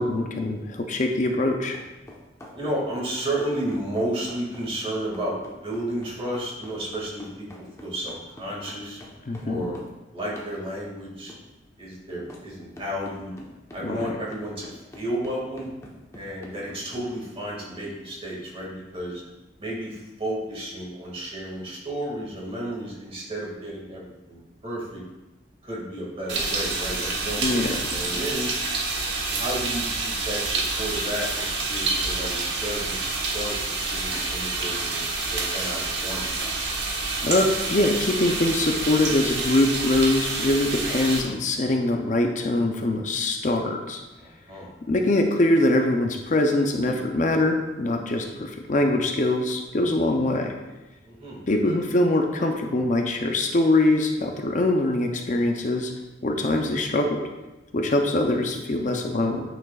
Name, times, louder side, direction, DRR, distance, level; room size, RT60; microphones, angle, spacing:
voice 1, 0.0-1.8 9.3-9.7 13.8-14.2 27.4-27.8 37.2-44.0 44.9-50.5 51.5-55.9 56.2-57.3 57.7-59.4, left 2 dB, 45° left, 3 dB, 0.6 m, -23 dB
sound 1, 1.7-10.0 10.4-10.6 11.3-11.4 12.3-12.5 12.8-17.1, left 1 dB, 15° left, 1.0 m, -46 dB
voice 2, 2.5-9.0 9.4-9.8 10.1-11.3 11.8-13.3 13.7-15.7 16.1-19.2 19.6-25.0 25.6-28.5 29.4-36.2 44.2-44.7 51.0-51.8, right 1 dB, 30° right, -4 dB, 2.1 m, -32 dB
sound 2, 26.3-41.2, right 3 dB, 80° right, 1.4 m, -28 dB
9.2 x 6.0 x 2.4 m, 1.1 s
head